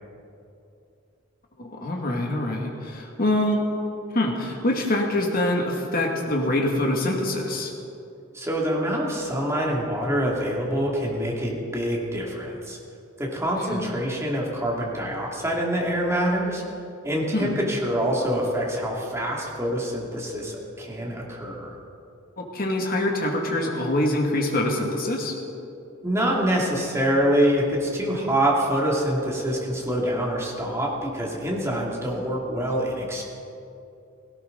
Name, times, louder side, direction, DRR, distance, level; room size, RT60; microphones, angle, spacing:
voice 1, 1.6-3.6 4.1-7.7 13.7-13.9 17.3-17.6 22.4-25.3, left 1 dB, 45° left, 0 dB, 2.2 m, -25 dB
voice 2, 8.3-12.8 13.2-16.6 17.0-21.7 26.0-33.2, equal, 15° right, -3 dB, 2.6 m, -25 dB
17.5 x 17.0 x 4.0 m, 2.7 s
head